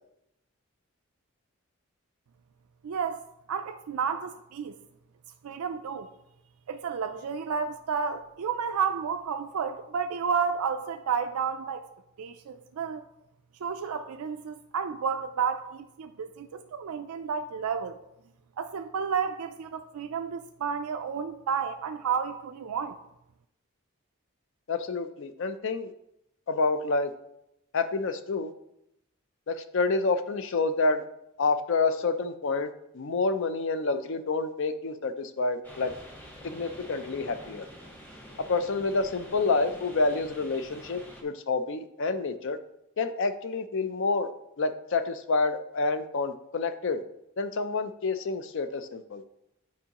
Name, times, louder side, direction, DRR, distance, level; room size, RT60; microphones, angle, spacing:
voice 1, 2.8-4.8 5.4-6.1 6.7-11.9 12.2-13.0 13.6-18.0 18.6-23.0, right 6 dB, 90° right, 0.4 m, -31 dB
voice 2, 24.7-25.9 26.5-27.1 27.7-28.5 29.5-31.0 31.4-35.9 36.4-37.7 38.5-42.6 43.0-44.3 44.6-47.0 47.4-49.2, left 3 dB, 60° left, 0.5 m, -28 dB
sound 1, 35.6-41.2, equal, 10° left, 0.9 m, -47 dB
9.3 x 4.6 x 2.9 m
head